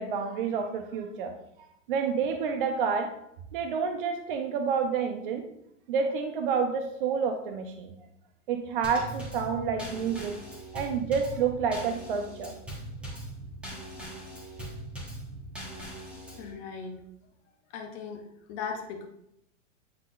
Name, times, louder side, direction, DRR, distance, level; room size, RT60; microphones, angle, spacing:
voice 1, 0.0-1.3 1.9-3.1 3.5-5.4 5.9-8.0 8.5-10.4 10.7-12.5, right 6 dB, 45° right, 5 dB, 0.6 m, -29 dB
Drum kit / Snare drum / Bass drum, 8.8-16.5, right 1 dB, 5° right, 1.2 m, -41 dB
voice 2, 16.4-17.0 17.7-19.1, left 6 dB, 20° left, 2 dB, 0.6 m, -38 dB
9.6 x 3.9 x 2.5 m, 0.78 s
supercardioid pair, 165°, 39 cm